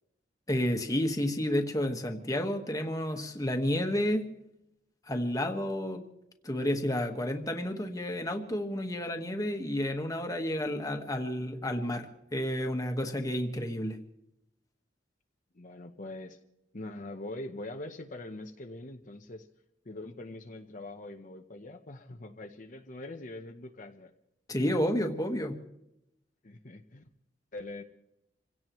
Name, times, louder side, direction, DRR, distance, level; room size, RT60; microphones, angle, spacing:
voice 1, 0.5-4.2 5.1-6.0 6.4-14.0 24.5-25.5, left 1 dB, 20° left, 4 dB, 1.5 m, -31 dB
voice 2, 15.5-16.4 16.7-19.5 19.8-24.1 26.4-27.1 27.5-27.8, left 2 dB, 45° left, 4 dB, 0.9 m, -43 dB
27.0 x 17.0 x 3.1 m, 0.84 s
head